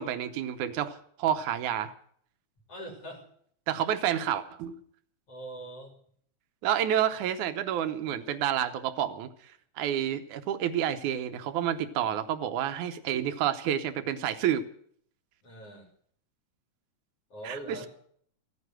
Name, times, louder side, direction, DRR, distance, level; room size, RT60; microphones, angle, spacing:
voice 1, 0.0-1.9 3.7-4.8 6.6-9.3 9.8-14.6 17.4-17.9, right 10 dB, 85° right, 9 dB, 2.3 m, -29 dB
voice 2, 2.7-3.3 5.3-5.9 15.4-15.9 17.3-17.9, right 1 dB, 50° left, 2 dB, 4.3 m, -42 dB
15.5 x 9.6 x 9.0 m, 0.63 s
omnidirectional pair, 3.4 m